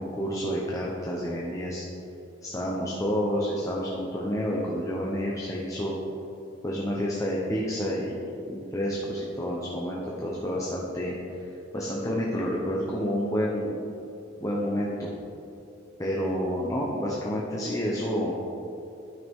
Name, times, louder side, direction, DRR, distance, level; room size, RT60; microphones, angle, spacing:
voice 1, 0.0-1.8 2.4-6.0 6.6-11.1 11.4-13.8 14.4-15.1 16.0-18.4, equal, 15° left, -4 dB, 0.8 m, -29 dB
12.5 x 5.8 x 3.6 m, 2.9 s
head